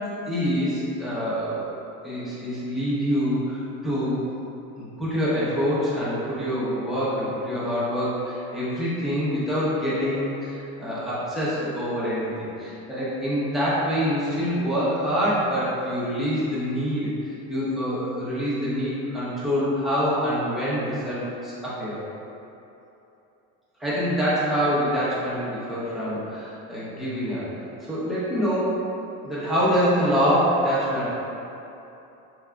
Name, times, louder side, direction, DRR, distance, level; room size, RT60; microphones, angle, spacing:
voice 1, 0.3-1.6 2.0-4.2 4.8-12.3 12.6-22.0 23.8-27.4 27.9-28.9 29.2-31.1, equal, ahead, -11 dB, 1.0 m, -25 dB
5.2 x 3.4 x 2.4 m, 2.9 s
cardioid pair, 165°, 32 cm